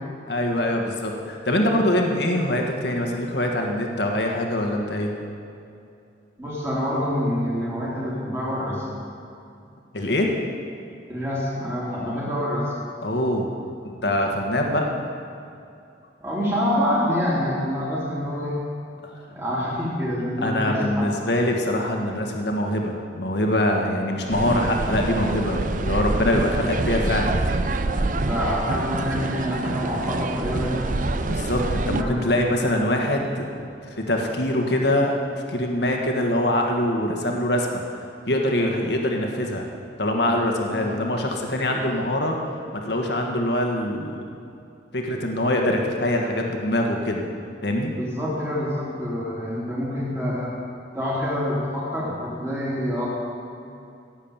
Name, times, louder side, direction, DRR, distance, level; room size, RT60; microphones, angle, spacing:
voice 1, 0.3-5.1 9.9-10.3 13.0-13.5 13.8-14.9 19.0-19.1 20.4-27.3 31.2-35.2 35.5-37.8 38.3-39.6 40.0-42.4 42.7-44.2 44.9-47.2 47.6-47.9, left 1 dB, 65° left, 1 dB, 1.6 m, -24 dB
voice 2, 6.4-8.9 11.1-12.7 16.2-18.6 19.3-21.1 28.2-30.9 32.0-32.2 40.7-40.9 41.7-41.9 47.2-47.3 47.9-50.6 50.9-53.1, equal, 15° right, -6 dB, 3.3 m, -26 dB
sound 1, 24.3-32.0, right 2 dB, 45° right, 0.6 m, -26 dB
17.5 x 7.4 x 7.4 m, 2.6 s
head